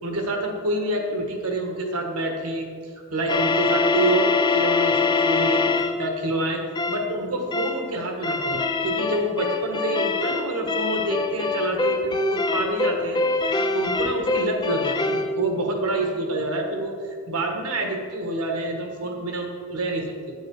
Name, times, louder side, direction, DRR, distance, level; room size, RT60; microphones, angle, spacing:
voice 1, 0.0-2.7 3.1-5.6 6.0-6.6 6.9-13.2 13.5-20.3, right 1 dB, 85° right, 3 dB, 1.4 m, -27 dB
sound 1, 3.3-6.0 6.8-7.1 7.5-7.8 8.2-15.3, left 4 dB, 20° left, 0.4 m, -24 dB
9.7 x 6.4 x 4.8 m, 2.1 s
head